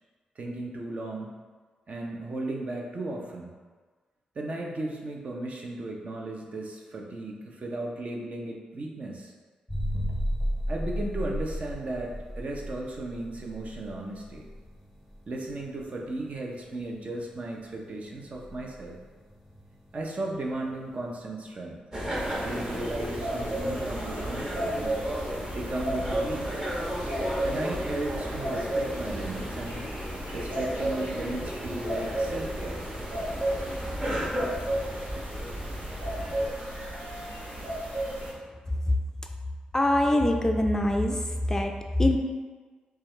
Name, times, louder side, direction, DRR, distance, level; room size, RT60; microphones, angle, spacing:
voice 1, 0.4-1.3 1.9-3.5 4.4-9.3 10.7-14.5 15.3-19.0 19.9-21.8 22.4-25.0 25.5-26.6 27.4-29.9 30.3-32.8, right 2 dB, 50° right, -1 dB, 0.7 m, -35 dB
sound 1, 9.7-21.3, equal, ahead, 1.0 m, -35 dB
sound 2, 21.9-36.4, equal, 25° right, 1.1 m, -35 dB
sound 3, 22.1-38.3, right 1 dB, 65° right, 1.0 m, -34 dB
voice 2, 39.7-41.2 41.5-41.7 42.0-42.2, left 1 dB, 20° left, 3 dB, 0.4 m, -23 dB
4.6 x 2.4 x 3.2 m, 1.4 s
cardioid pair, 55°, 3 cm